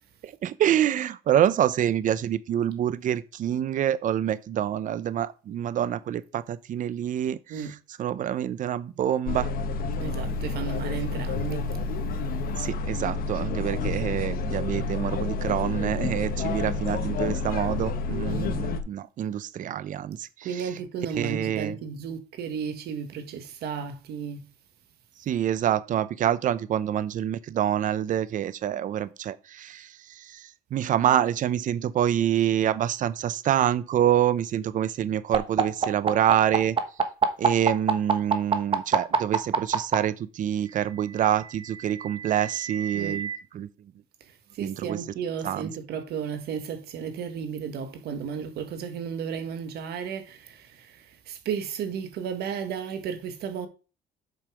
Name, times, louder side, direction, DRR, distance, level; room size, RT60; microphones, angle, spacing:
voice 1, 0.2-7.7 8.0-9.5 12.6-20.5 21.2-21.8 25.3-36.8 37.4-43.3 43.5-43.7 44.6-45.0 45.4-45.7, right 10 dB, 50° right, 0.6 m, -26 dB
sound 1, 9.3-18.8, left 3 dB, 60° left, 1.2 m, -29 dB
voice 2, 10.0-11.7 18.3-18.5 20.4-24.5 42.9-43.2 44.2-53.7, right 7 dB, 70° right, 1.7 m, -34 dB
sound 2, 35.3-39.9 41.1-43.4, right 6 dB, 30° right, 1.2 m, -25 dB
7.7 x 5.5 x 5.0 m
cardioid pair, 110°, 17 cm